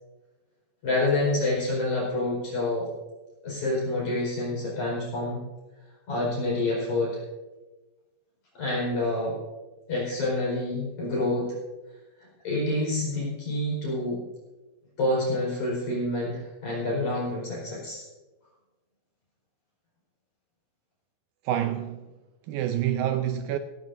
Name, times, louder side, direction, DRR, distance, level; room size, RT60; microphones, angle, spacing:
voice 1, 0.8-2.9 3.4-5.4 6.1-7.2 8.6-9.4 9.9-11.5 12.4-14.2 15.0-18.1, left 2 dB, 45° left, 5.6 m, -27 dB
voice 2, 21.4-22.1 22.4-23.6, right 11 dB, 80° right, 2.1 m, -27 dB
16.5 x 16.0 x 2.6 m
omnidirectional pair, 4.7 m